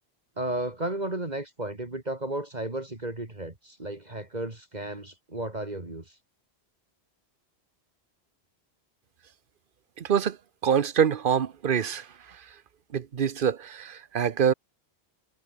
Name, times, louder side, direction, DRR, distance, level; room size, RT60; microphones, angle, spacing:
voice 1, 0.4-6.2, right 1 dB, 40° right, 3.0 m, -34 dB
voice 2, 10.0-10.4 10.6-12.1 12.9-14.5, right 8 dB, 55° right, 1.0 m, -25 dB
omnidirectional pair, 1.1 m